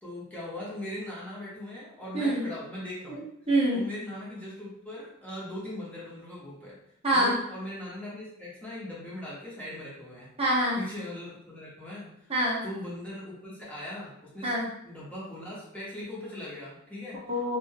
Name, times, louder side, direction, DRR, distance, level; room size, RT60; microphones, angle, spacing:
voice 1, 0.0-3.2 3.7-6.8 7.1-10.3 10.7-12.3 12.6-14.6 14.8-17.2, left 1 dB, 5° left, -8 dB, 0.8 m, -40 dB
voice 2, 2.1-2.4 3.1-3.2 3.5-3.8 7.0-7.4 10.4-10.8 12.3-12.6 14.4-14.7 17.3-17.6, right 1 dB, 30° right, -4 dB, 0.8 m, -25 dB
2.6 x 2.2 x 3.2 m, 0.76 s
head